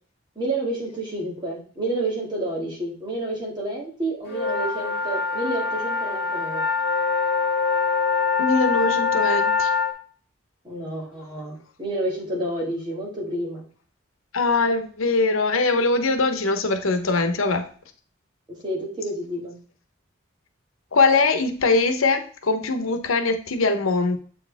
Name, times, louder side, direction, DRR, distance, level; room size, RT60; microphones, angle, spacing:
voice 1, 0.4-6.6 10.6-13.7 18.5-19.6, right 1 dB, 20° right, -3 dB, 2.4 m, -29 dB
sound 1, 4.3-9.9, left 5 dB, 50° left, 2.0 m, -24 dB
voice 2, 8.4-9.7 14.3-17.7 20.9-24.2, left 3 dB, 90° left, 8 dB, 1.0 m, -22 dB
7.7 x 4.7 x 3.5 m, 0.43 s
head